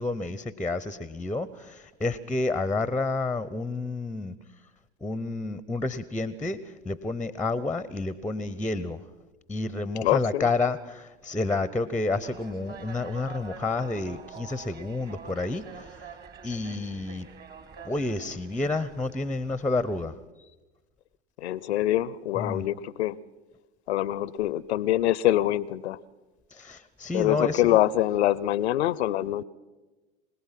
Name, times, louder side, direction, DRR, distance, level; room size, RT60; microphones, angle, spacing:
voice 1, 0.0-4.3 5.0-9.0 9.5-16.0 16.4-17.3 17.8-20.1 22.3-22.6 26.5-27.8, left 3 dB, 5° left, 16 dB, 0.7 m, -30 dB
voice 2, 10.0-10.5 21.4-23.2 23.9-26.0 27.1-29.4, left 14 dB, 75° left, 21 dB, 0.7 m, -25 dB
sound 1, 12.2-20.1, right 5 dB, 30° right, 1.6 m, -46 dB
25.5 x 18.0 x 5.8 m, 1.2 s
hypercardioid pair, 85°, 33 cm